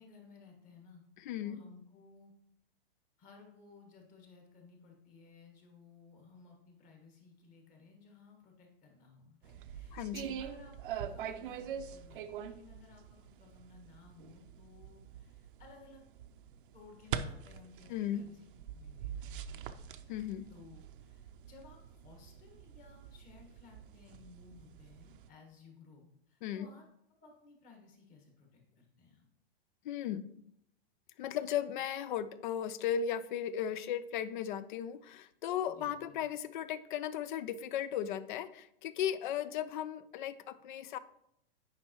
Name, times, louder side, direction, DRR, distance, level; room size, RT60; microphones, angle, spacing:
voice 1, 0.0-1.0 1.4-2.3 3.2-10.1 10.4-16.0 16.7-18.4 18.7-19.6 20.5-26.8 27.2-29.3 35.7-36.2, left 4 dB, 25° left, 1 dB, 1.7 m, -58 dB
voice 2, 1.2-1.6 9.9-10.4 17.9-18.2 20.1-20.5 26.4-26.7 29.8-30.2 31.2-41.0, left 9 dB, 50° left, 15 dB, 0.5 m, -36 dB
sound 1, 9.4-25.3, right 8 dB, 55° right, 0.6 m, -44 dB
9.4 x 5.6 x 3.1 m, 0.76 s
hypercardioid pair, 150°, 31 cm